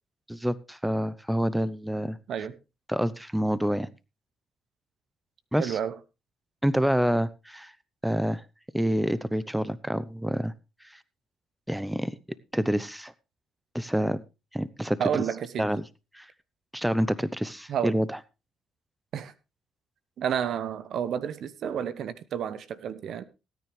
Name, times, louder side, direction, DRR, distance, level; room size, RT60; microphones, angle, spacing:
voice 1, 0.3-2.2 2.9-3.9 5.5-5.8 6.6-7.7 8.0-8.4 8.7-10.5 11.7-12.1 12.5-13.1 13.7-14.2 14.5-15.2 15.6-15.8 16.1-16.3 16.7-18.2, equal, 5° right, 0.9 m, -27 dB
voice 2, 5.6-6.0 15.0-15.7 17.7-18.0 19.1-19.3 20.2-23.2, right 8 dB, 65° right, 1.0 m, -30 dB
17.5 x 9.6 x 3.3 m
supercardioid pair, 65°, 0 cm